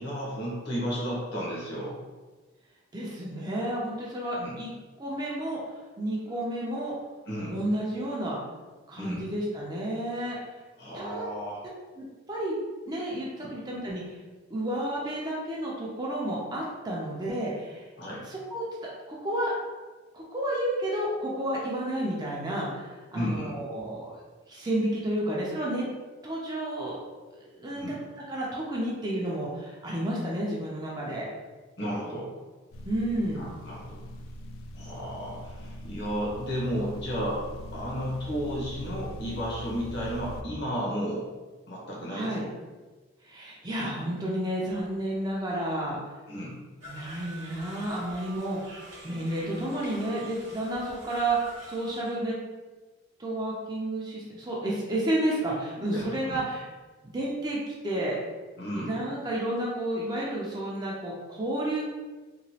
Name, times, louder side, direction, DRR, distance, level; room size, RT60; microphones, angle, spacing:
voice 1, 0.0-2.0 4.4-4.6 7.3-7.6 9.0-9.2 10.8-11.6 13.4-13.5 18.0-18.2 23.1-23.6 27.8-28.0 31.8-32.3 33.4-34.0 34.7-37.5 37.7-41.3 41.7-42.4 46.3-46.6 55.9-56.4 58.6-58.9, equal, 55° left, -5 dB, 0.9 m, -33 dB
voice 2, 2.9-4.7 5.0-5.6 6.0-6.9 7.5-8.4 8.9-10.4 10.9-11.2 12.0-12.5 12.9-14.2 14.5-17.8 18.3-18.6 19.1-19.5 20.1-24.2 24.5-25.9 26.2-27.0 27.4-28.0 28.3-31.3 32.9-33.5 42.1-42.4 43.2-46.0 46.9-52.4 53.2-56.7 57.0-58.2 58.8-61.8, right 1 dB, 20° right, -5 dB, 0.4 m, -31 dB
sound 1, 32.7-40.4, equal, 80° left, 0.3 m, -42 dB
sound 2, 46.8-52.2, right 1 dB, 65° right, 0.9 m, -46 dB
2.9 x 2.3 x 2.7 m, 1.3 s
head